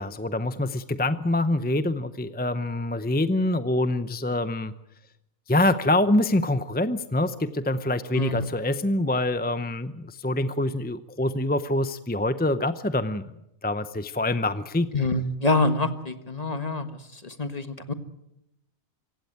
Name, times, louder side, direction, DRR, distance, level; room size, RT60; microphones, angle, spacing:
voice 1, 0.0-4.7 5.5-13.3 13.6-14.9, left 1 dB, 10° left, 12 dB, 0.5 m, -25 dB
voice 2, 8.1-8.5 14.9-16.9 17.1-17.9, left 2 dB, 30° left, 9 dB, 1.7 m, -26 dB
25.5 x 15.5 x 9.4 m, 0.84 s
omnidirectional pair, 1.4 m